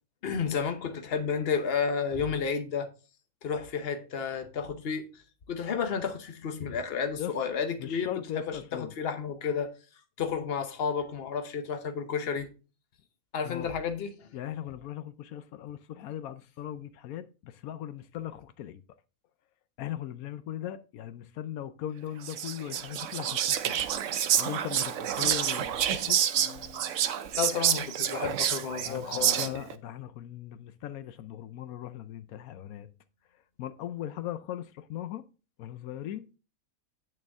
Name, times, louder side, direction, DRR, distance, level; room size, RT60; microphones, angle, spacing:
voice 1, 0.2-2.9 3.4-5.1 5.5-9.7 10.2-12.5 13.3-14.3 27.4-29.6, left 6 dB, 45° left, 1.1 m, -31 dB
voice 2, 7.8-8.9 13.4-13.7 14.3-18.8 19.8-23.8 24.3-26.2 28.8-32.9 33.6-35.3 35.6-36.2, left 11 dB, 85° left, 1.1 m, -39 dB
Whispering, 22.2-29.7, right 10 dB, 65° right, 0.9 m, -28 dB
Acoustic guitar / Strum, 26.3-31.7, left 5 dB, 30° left, 3.4 m, -56 dB
8.9 x 6.3 x 3.5 m
omnidirectional pair, 1.5 m